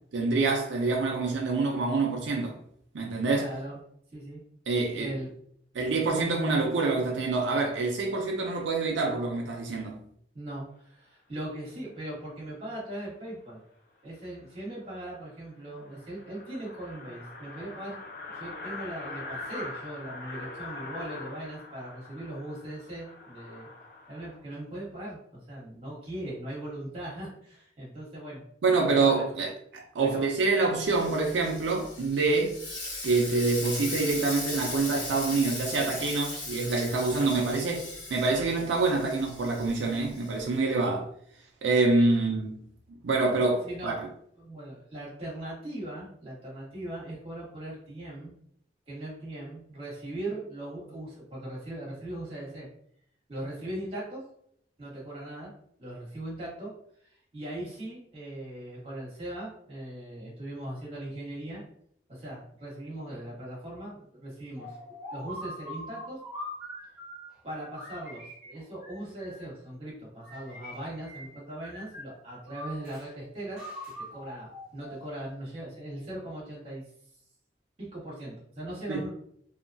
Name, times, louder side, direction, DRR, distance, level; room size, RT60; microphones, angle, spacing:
voice 1, 0.1-2.6 2.9-3.5 4.7-5.1 5.7-10.0 28.6-32.6 33.0-41.1 41.6-42.6 43.0-44.1 78.9-79.0, right 3 dB, 85° right, 0.4 m, -26 dB
voice 2, 3.3-3.8 4.1-4.4 4.9-5.3 10.3-13.6 14.0-18.0 18.3-23.7 24.1-28.4 28.8-29.3 30.0-30.3 37.1-37.3 43.6-44.1 44.3-48.3 48.9-52.7 53.3-54.2 54.8-55.5 55.8-56.7 57.0-61.6 62.1-64.7 65.1-66.2 67.4-73.6 74.1-76.8 77.8-79.1, right 1 dB, 35° right, 1.2 m, -39 dB
sound 1, 14.4-14.5 14.9-15.0 15.3-15.4 15.6-24.4, left 2 dB, 50° left, 0.5 m, -42 dB
Frying (food), 30.9-40.6, left 2 dB, 85° left, 1.3 m, -38 dB
sound 2, 64.6-67.3 67.8-69.6 70.2-71.3 71.6-73.1 73.6-75.3, left 1 dB, 5° right, 1.0 m, -43 dB
2.8 x 2.2 x 2.5 m
head